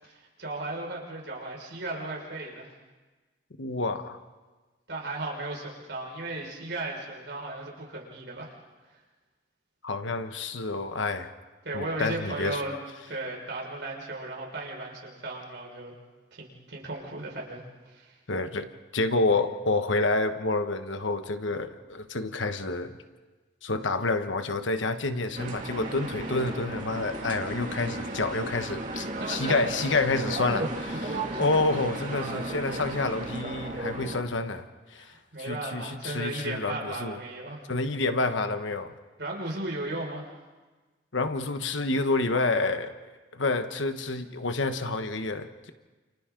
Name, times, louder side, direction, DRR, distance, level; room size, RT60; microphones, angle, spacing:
voice 1, 0.0-2.7 4.9-8.5 11.6-12.8 13.1-15.9 16.3-18.1 29.2-29.9 30.6-30.7 31.1-31.5 32.3-32.5 35.0-35.1 35.3-37.7 39.2-40.3, right 2 dB, 70° right, -2 dB, 5.6 m, -36 dB
voice 2, 3.6-4.2 9.8-11.3 11.7-12.6 18.3-23.0 23.6-35.1 35.4-37.2 37.7-38.9 41.1-42.9 43.3-45.7, left 3 dB, 90° left, 8 dB, 1.3 m, -28 dB
sound 1, 25.3-34.2, right 2 dB, 40° right, 2.4 m, -35 dB
29.0 x 29.0 x 3.9 m, 1.3 s
head